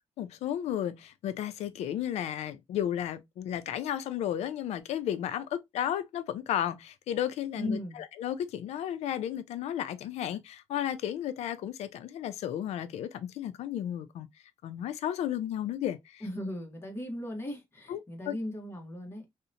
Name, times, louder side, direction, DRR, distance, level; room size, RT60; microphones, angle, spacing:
voice 1, 0.2-14.3 14.6-16.2 17.9-18.0 18.3-18.4, left 11 dB, 85° left, 0.4 m, -33 dB
voice 2, 7.6-8.0 16.2-19.3, left 1 dB, 20° left, 0.9 m, -37 dB
2.7 x 2.1 x 2.5 m
cardioid pair, 130°, 11 cm